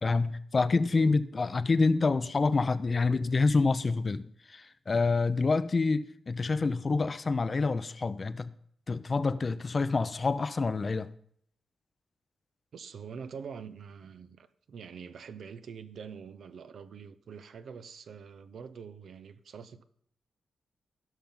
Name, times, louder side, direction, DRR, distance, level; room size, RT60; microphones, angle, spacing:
voice 1, 0.0-4.2 4.5-8.5 8.9-11.1, left 3 dB, 45° left, 0.6 m, -27 dB
voice 2, 12.7-19.8, right 6 dB, 70° right, 0.7 m, -45 dB
16.0 x 5.7 x 3.8 m
supercardioid pair, 50°, 0 cm